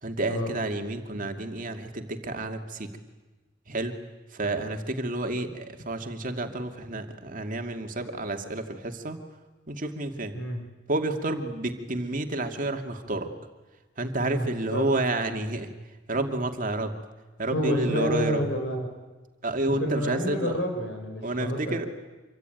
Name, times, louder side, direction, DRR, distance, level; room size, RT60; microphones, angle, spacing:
voice 1, 0.0-2.9 3.7-3.9 4.3-9.2 9.7-10.4 10.9-13.3 14.0-15.7 16.1-16.9 17.4-18.4 19.4-20.6 21.2-21.9, right 2 dB, 45° right, 5 dB, 2.5 m, -30 dB
voice 2, 14.2-14.9 17.5-18.9 19.7-21.9, equal, 70° left, 4 dB, 4.8 m, -29 dB
26.5 x 24.0 x 9.4 m, 1.2 s
head